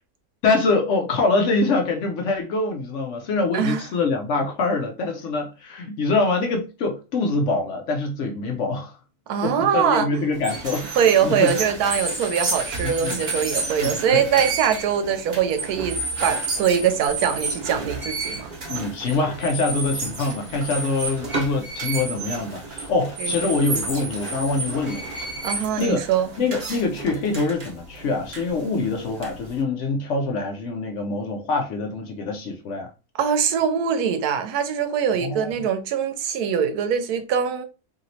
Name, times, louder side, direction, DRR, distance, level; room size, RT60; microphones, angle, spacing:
voice 1, 0.4-8.9 9.4-10.9 11.2-11.5 12.8-13.2 13.8-14.2 18.7-25.3 25.8-26.0 26.4-32.9 35.2-35.5, left 3 dB, 65° left, 0.8 m, -24 dB
voice 2, 9.3-10.1 11.0-18.5 23.2-23.6 25.4-26.3 33.2-37.6, right 8 dB, 85° right, 1.1 m, -22 dB
sound 1, 10.3-29.6, right 3 dB, 40° right, 0.8 m, -31 dB
3.0 x 2.8 x 2.7 m
omnidirectional pair, 1.6 m